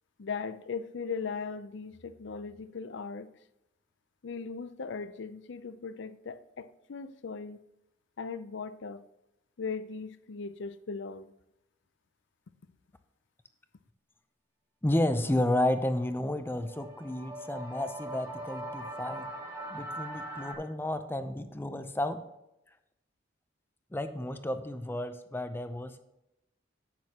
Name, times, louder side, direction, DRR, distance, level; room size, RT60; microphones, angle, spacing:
voice 1, 0.2-3.3 4.2-7.6 8.2-9.0 9.6-11.3, left 5 dB, 65° left, 0.5 m, -38 dB
voice 2, 14.8-19.3 19.7-22.2 23.9-26.0, left 1 dB, 10° left, 0.5 m, -31 dB
sound 1, 16.3-20.5, right 1 dB, 20° right, 1.5 m, -41 dB
10.5 x 8.5 x 2.9 m
head